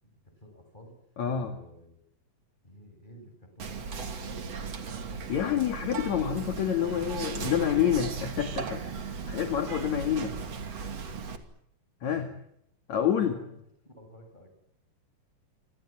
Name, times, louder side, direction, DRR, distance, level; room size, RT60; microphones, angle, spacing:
voice 1, 0.0-2.0 2.6-5.3 7.1-7.8 9.9-10.4 12.0-12.4 12.9-14.5, equal, 10° left, 5 dB, 7.7 m, -51 dB
voice 2, 1.2-1.5 5.3-10.3 12.0-12.3 12.9-13.4, left 9 dB, 55° left, 7 dB, 3.1 m, -28 dB
Whispering, 3.6-11.4, right 5 dB, 50° right, 3.5 m, -37 dB
28.0 x 26.5 x 7.5 m, 0.74 s
omnidirectional pair, 4.1 m